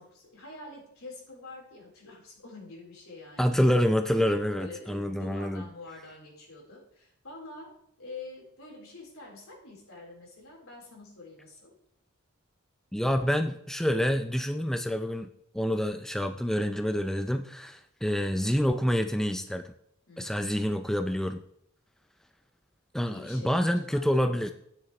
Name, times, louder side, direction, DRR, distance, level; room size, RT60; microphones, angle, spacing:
voice 1, 0.0-3.5 4.6-7.7 8.0-11.7 20.1-20.5 23.0-24.0, left 3 dB, 75° left, -2 dB, 4.1 m, -46 dB
voice 2, 3.4-5.6 12.9-15.3 15.5-19.6 20.2-21.4 22.9-24.5, equal, ahead, 7 dB, 0.4 m, -27 dB
12.5 x 9.6 x 3.2 m, 0.73 s
head